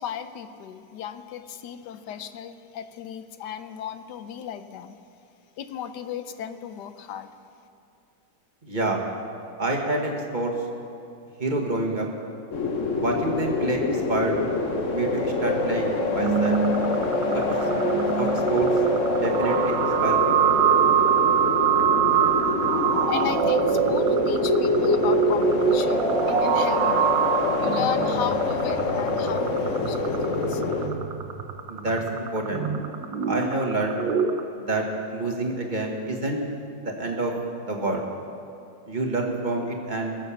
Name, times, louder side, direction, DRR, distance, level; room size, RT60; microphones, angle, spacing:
voice 1, 0.0-5.0 5.6-7.3 23.1-27.2 27.6-30.6, left 9 dB, 70° left, 10 dB, 1.3 m, -35 dB
voice 2, 8.6-9.0 9.6-10.5 11.4-12.1 13.0-14.4 14.9-16.6 17.3-17.6 18.2-18.7 19.1-20.5 31.7-32.7 33.3-34.0 34.6-34.8 35.1-36.4 36.8-37.3 37.6-38.0 38.9-40.2, right 2 dB, 25° right, 1 dB, 1.6 m, -27 dB
sound 1, 12.5-30.9, left 3 dB, 45° left, 1.4 m, -26 dB
sound 2, 16.2-34.4, right 7 dB, 85° right, 1.6 m, -24 dB
20.5 x 7.4 x 7.1 m, 2.6 s
omnidirectional pair, 2.0 m